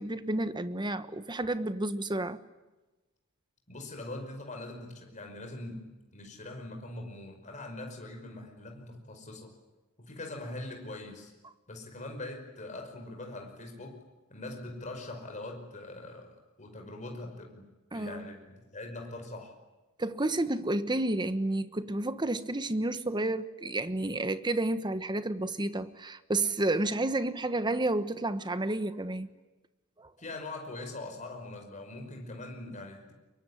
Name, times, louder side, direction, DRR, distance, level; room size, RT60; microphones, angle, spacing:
voice 1, 0.0-2.4 17.9-18.2 20.0-29.3 30.0-30.1, right 2 dB, 20° right, 1.2 m, -31 dB
voice 2, 3.7-9.5 10.0-11.3 11.7-14.0 14.3-16.3 16.6-17.7 17.9-19.6 30.2-33.1, left 2 dB, 35° left, 5.4 m, -42 dB
24.5 x 23.0 x 10.0 m
head